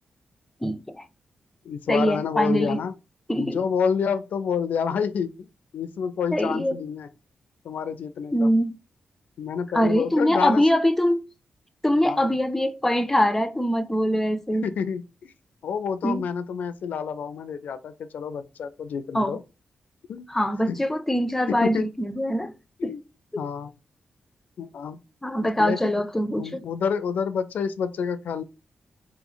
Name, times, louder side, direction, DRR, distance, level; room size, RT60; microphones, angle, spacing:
voice 1, 0.6-1.0 1.9-2.8 3.3-3.6 6.3-6.8 8.3-8.7 9.7-11.2 11.8-14.7 16.0-16.3 19.1-19.4 20.3-22.5 22.8-22.9 23.3-23.4 25.2-26.6, equal, 10° left, 0.4 m, -23 dB
voice 2, 1.6-2.9 3.4-5.5 5.7-7.1 7.6-8.5 9.4-10.7 11.9-12.3 14.6-15.3 15.6-19.4 20.1-20.3 20.7-20.8 21.5-21.9 22.8-23.0 23.4-23.7 24.6-25.0 25.4-26.0 26.4-28.4, left 6 dB, 85° left, 0.4 m, -28 dB
3.1 x 3.1 x 3.8 m
cardioid pair, 90°, 3 cm